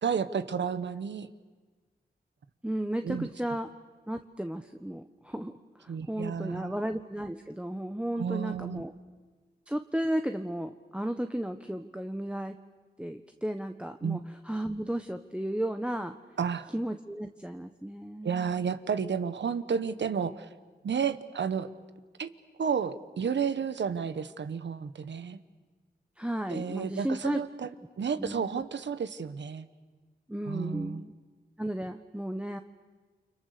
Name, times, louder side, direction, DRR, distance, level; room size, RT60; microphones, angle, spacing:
voice 1, 0.0-1.3 3.0-3.3 5.9-6.7 8.1-8.8 14.0-14.2 16.4-16.7 18.2-20.5 20.8-21.7 22.2-22.3 22.6-25.4 26.5-27.7 28.0-29.7 30.5-31.0, right 6 dB, 75° right, 12 dB, 1.2 m, -31 dB
voice 2, 2.6-3.7 4.1-8.9 9.7-12.5 13.0-14.2 14.4-16.1 16.7-18.5 26.2-27.4 28.2-28.6 30.3-31.1 31.6-32.6, right 1 dB, 5° right, 7 dB, 1.1 m, -34 dB
29.5 x 25.5 x 6.7 m, 1.4 s
cardioid pair, 55°, 19 cm